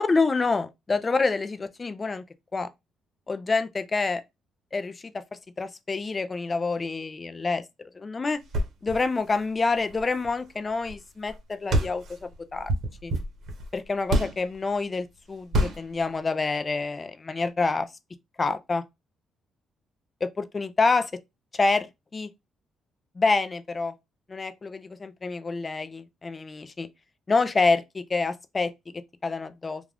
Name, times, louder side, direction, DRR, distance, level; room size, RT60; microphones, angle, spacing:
voice 1, 0.0-2.2 2.5-2.7 3.3-4.2 4.7-5.2 5.6-7.6 7.9-8.4 8.8-12.7 13.0-13.1 13.7-17.9 18.4-18.8 20.2-21.1 21.5-21.9 22.1-22.3 23.2-23.9 24.3-26.9 27.3-29.8, left 3 dB, 30° left, 0.4 m, -27 dB
sound 1, 8.4-11.0 11.3-11.4 11.7-14.5 15.5-16.0, right 1 dB, 65° right, 0.9 m, -28 dB
2.4 x 2.3 x 3.3 m
cardioid pair, 90°, 0 cm